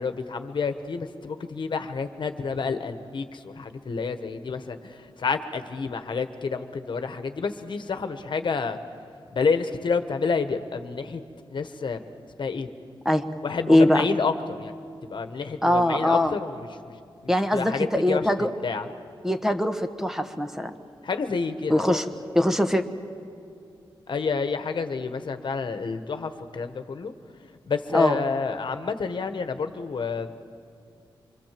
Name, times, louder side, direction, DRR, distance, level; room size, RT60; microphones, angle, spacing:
voice 1, 0.0-8.8 9.3-11.2 11.5-12.0 12.4-12.7 13.4-14.7 15.0-17.0 17.2-18.9 21.0-22.0 24.1-27.1 27.4-30.3, left 5 dB, 60° left, 8 dB, 1.3 m, -29 dB
voice 2, 13.7-14.1 15.6-16.4 17.3-18.5 19.2-20.7 21.7-22.1 22.3-22.8 27.9-28.2, left 1 dB, 5° right, 7 dB, 1.2 m, -22 dB
25.5 x 23.5 x 7.6 m, 2.5 s
wide cardioid pair, 90°, 9 cm